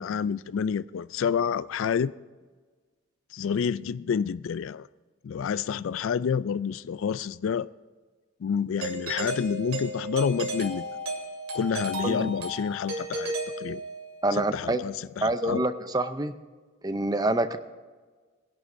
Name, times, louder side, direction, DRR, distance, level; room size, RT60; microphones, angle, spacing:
voice 1, 0.0-2.1 3.3-4.9 5.2-7.7 8.4-10.9 11.5-13.3 13.6-13.8 14.4-15.6, left 7 dB, 70° left, 0.3 m, -28 dB
Doorbell, 8.8-14.2, right 1 dB, 85° right, 2.5 m, -34 dB
voice 2, 14.2-14.8 15.2-16.3 16.8-17.6, right 2 dB, 20° right, 0.6 m, -26 dB
20.0 x 11.0 x 2.7 m
head